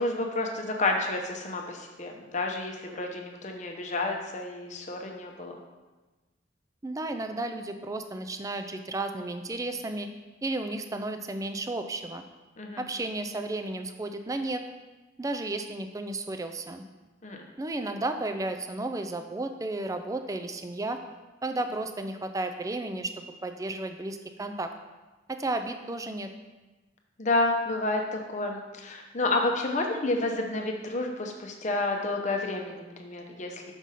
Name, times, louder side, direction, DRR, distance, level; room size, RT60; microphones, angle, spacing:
voice 1, 0.0-5.6 12.6-12.8 17.2-17.5 27.2-33.7, left 2 dB, 35° left, 2 dB, 0.7 m, -30 dB
voice 2, 6.8-10.1 10.4-12.2 12.8-14.6 15.2-16.8 17.6-21.0 21.4-24.7 25.3-26.3, right 2 dB, 15° right, 7 dB, 0.3 m, -33 dB
6.2 x 5.3 x 4.1 m, 1.2 s
head